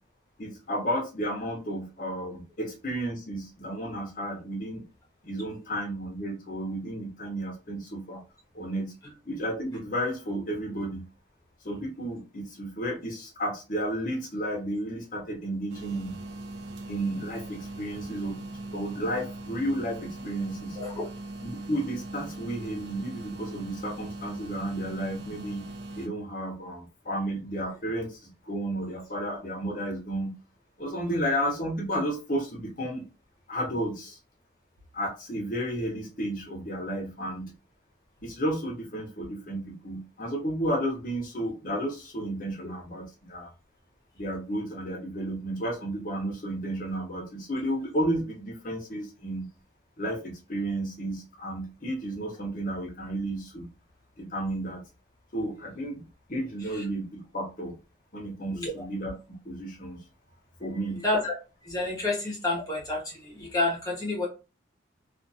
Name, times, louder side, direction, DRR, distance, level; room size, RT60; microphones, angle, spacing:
voice 1, 0.4-4.8 5.2-8.2 8.5-8.9 9.3-11.0 11.6-16.1 16.9-18.4 18.7-20.8 21.4-25.6 26.0-30.3 30.8-33.1 33.5-34.2 34.9-37.5 38.2-43.5 44.2-49.5 50.0-53.7 54.2-54.8 55.3-57.8 58.1-59.1 59.4-60.0 60.6-61.0, right 1 dB, 45° left, 0.8 m, -32 dB
sound 1, 15.7-26.1, right 2 dB, 65° right, 0.5 m, -40 dB
voice 2, 20.8-21.1 56.7-56.8 58.5-58.8 60.9-61.3 61.6-64.3, left 2 dB, 20° left, 1.0 m, -29 dB
2.5 x 2.4 x 2.6 m
head